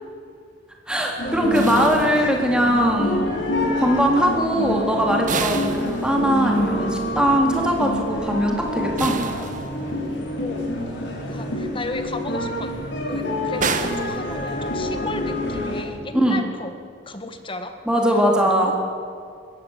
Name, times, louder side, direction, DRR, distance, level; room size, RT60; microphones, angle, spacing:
voice 1, 0.9-9.2 16.1-16.4 17.9-18.7, equal, 5° right, 0 dB, 3.7 m, -21 dB
sound 1, 1.2-15.8, left 1 dB, 85° left, 5.8 m, -27 dB
sound 2, 1.5-2.8 5.3-6.6 9.0-10.2 13.6-14.9, right 4 dB, 45° right, 1.5 m, -30 dB
voice 2, 11.3-12.7 13.1-16.7 17.1-17.7 18.4-18.8, left 2 dB, 30° left, 7 dB, 1.9 m, -33 dB
21.5 x 17.0 x 8.3 m, 2.3 s
head